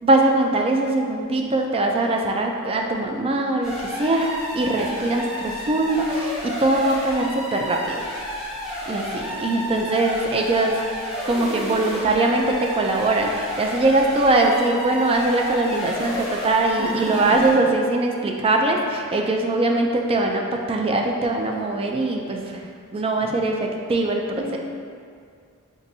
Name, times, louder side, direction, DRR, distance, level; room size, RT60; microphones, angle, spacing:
voice 1, 0.0-8.0 8.9-10.9 11.3-22.6 22.9-24.6, right 2 dB, 25° right, 2 dB, 0.3 m, -22 dB
sound 1, 3.6-17.7, equal, ahead, 0.8 m, -31 dB
voice 2, 16.8-17.4 19.0-19.2 24.4-24.6, right 1 dB, 60° right, -8 dB, 0.7 m, -30 dB
5.3 x 2.5 x 2.6 m, 2.2 s
head